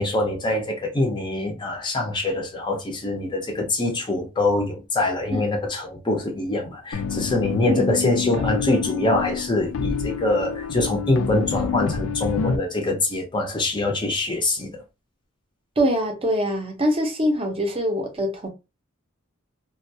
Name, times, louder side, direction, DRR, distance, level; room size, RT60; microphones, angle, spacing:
voice 1, 0.0-14.8, left 2 dB, 20° left, 0.5 m, -24 dB
sound 1, 6.9-12.6, left 6 dB, 80° left, 0.3 m, -28 dB
voice 2, 15.8-18.5, equal, 25° right, 0.6 m, -23 dB
2.2 x 2.1 x 2.6 m
head